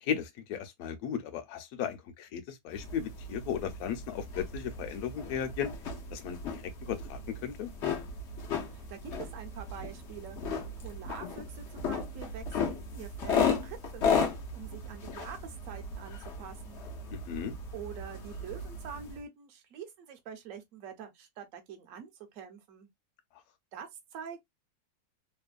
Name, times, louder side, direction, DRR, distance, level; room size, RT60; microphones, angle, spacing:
voice 1, 0.0-5.7 6.1-6.6 6.9-7.7 17.3-17.5, left 8 dB, 65° left, 1.0 m, -36 dB
sound 1, 2.7-19.2, left 5 dB, 85° left, 0.6 m, -35 dB
voice 2, 8.7-14.3 14.5-16.8 17.7-22.9 23.7-24.5, right 7 dB, 65° right, 0.8 m, -45 dB
3.0 x 2.0 x 2.4 m
omnidirectional pair, 2.0 m